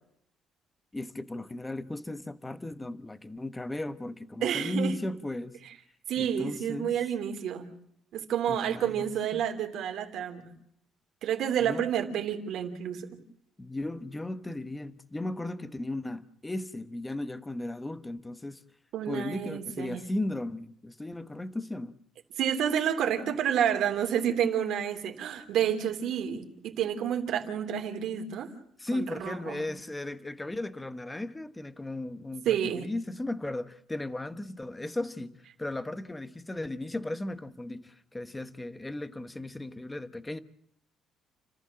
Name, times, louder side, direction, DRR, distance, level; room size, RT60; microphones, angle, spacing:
voice 1, 0.9-5.6 6.2-7.0 8.5-9.4 11.6-11.9 13.6-18.6 19.1-21.9 28.8-40.4, left 1 dB, 10° left, 1.0 m, -36 dB
voice 2, 4.4-4.9 6.1-7.7 8.1-10.5 11.2-13.1 18.9-20.0 22.4-28.5 28.9-29.6 32.4-32.9, right 9 dB, 65° right, 3.2 m, -29 dB
30.0 x 14.5 x 7.6 m
cardioid pair, 150°, 0 cm